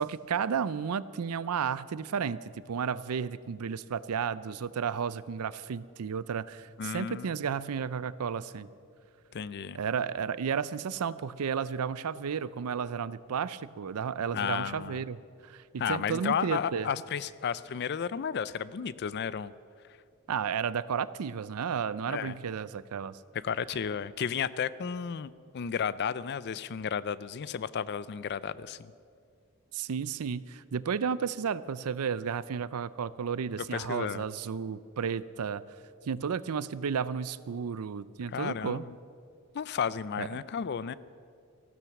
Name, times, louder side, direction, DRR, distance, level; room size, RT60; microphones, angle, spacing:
voice 1, 0.0-2.4 2.7-8.7 9.7-15.2 15.5-16.9 20.3-23.2 29.7-35.6 36.0-38.8 40.2-40.3, right 6 dB, 90° right, 17 dB, 0.5 m, -32 dB
voice 2, 6.8-7.3 9.3-9.8 14.3-15.0 15.8-19.5 22.1-22.3 23.4-28.9 33.7-34.2 38.3-39.0 39.5-40.9, left 7 dB, 50° left, 17 dB, 0.4 m, -33 dB
15.0 x 12.5 x 5.9 m, 2.3 s
head